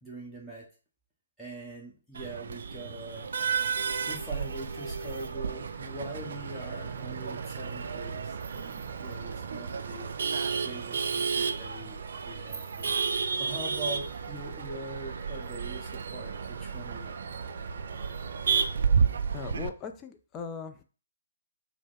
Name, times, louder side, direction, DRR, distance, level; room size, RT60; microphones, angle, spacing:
voice 1, 0.0-0.7 1.4-3.3 4.1-10.1 10.6-12.9 13.4-17.1, right 2 dB, 5° left, -7 dB, 1.1 m, -42 dB
Male speech man speaking / Laughter / Chatter, 2.1-19.7, right 6 dB, 60° right, 0.3 m, -32 dB
sound 1, 2.7-19.5, right 6 dB, 40° right, 0.7 m, -47 dB
voice 2, 19.3-20.8, left 6 dB, 20° left, 5 dB, 0.4 m, -39 dB
4.8 x 2.0 x 3.6 m, 0.36 s
figure-of-eight pair, 135°, 0 cm